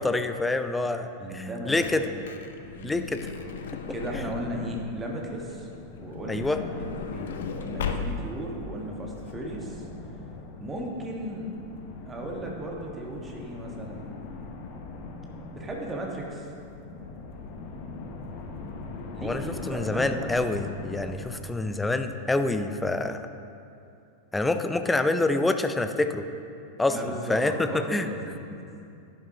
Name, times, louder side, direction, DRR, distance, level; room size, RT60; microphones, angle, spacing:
voice 1, 0.0-1.1 1.3-2.1 2.8-3.2 4.1-4.3 6.3-6.6 19.2-23.2 24.3-26.2 26.8-28.1, left 2 dB, 10° left, 8 dB, 0.5 m, -27 dB
voice 2, 1.2-2.1 2.8-3.0 3.9-5.7 6.0-9.9 10.6-11.5 12.1-14.1 15.5-16.5 19.1-20.3 26.9-28.5, right 1 dB, 15° right, -1 dB, 1.5 m, -36 dB
Truck / Door, 1.4-4.9 5.9-8.5 9.2-9.3 9.5-9.6, left 5 dB, 60° left, 0.6 m, -36 dB
sound 1, 4.1-22.5, left 3 dB, 45° left, 1.0 m, -42 dB
11.0 x 11.0 x 2.9 m, 2.6 s
figure-of-eight pair, 90°, 0 cm